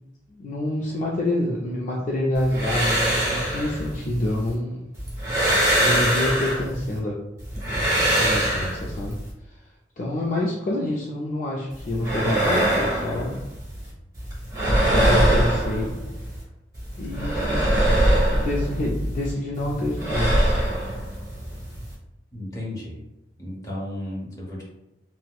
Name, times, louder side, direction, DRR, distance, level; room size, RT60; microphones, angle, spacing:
voice 1, 0.3-4.9 5.8-7.2 8.2-9.2 9.5-9.6 10.0-13.4 14.8-16.0 17.0-17.6 18.3-20.4, left 1 dB, 45° left, -4 dB, 0.4 m, -27 dB
sound 1, 2.4-4.5 5.0-7.0 7.4-9.3 11.7-13.9 14.2-16.4 16.7-19.3 19.6-21.9, right 1 dB, 20° right, 1.1 m, -23 dB
voice 2, 22.3-23.0 23.4-24.6, left 1 dB, 20° left, -5 dB, 0.9 m, -33 dB
4.2 x 2.1 x 2.3 m, 0.91 s
head